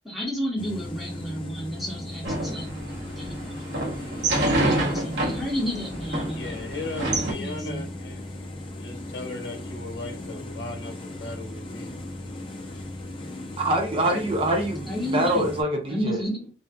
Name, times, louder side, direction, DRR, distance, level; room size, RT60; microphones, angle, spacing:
voice 1, 0.0-3.8 4.5-6.6 7.1-7.9 14.9-15.5 15.9-16.5, equal, ahead, 1.1 m, -32 dB
sound 1, 0.6-15.6, left 1 dB, 30° left, 0.5 m, -37 dB
sound 2, 2.2-7.3, right 1 dB, 75° right, 0.7 m, -27 dB
voice 2, 6.3-8.2 8.8-10.9 11.2-12.0, left 2 dB, 85° left, 0.7 m, -37 dB
voice 3, 13.6-16.2, right 1 dB, 30° right, 0.6 m, -25 dB
2.6 x 2.3 x 2.3 m
head